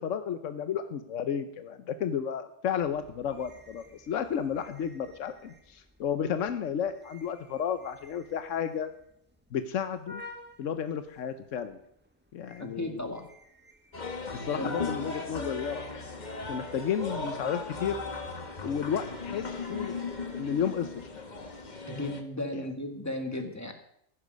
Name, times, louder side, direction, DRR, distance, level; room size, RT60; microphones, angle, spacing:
voice 1, 0.0-8.9 9.5-10.2 10.6-11.8 12.3-13.2 14.3-17.9 18.6-19.9 20.4-20.9 22.5-22.7, left 8 dB, 85° left, 10 dB, 1.2 m, -32 dB
knife sharpener, 2.8-21.7, left 1 dB, 10° right, 1.6 m, -55 dB
voice 2, 12.6-13.3 14.5-14.7 21.9-23.7, left 1 dB, 15° left, 4 dB, 1.8 m, -35 dB
sound 1, 13.9-22.2, left 3 dB, 35° left, 1.4 m, -37 dB
15.0 x 11.0 x 5.3 m, 0.72 s
omnidirectional pair, 1.3 m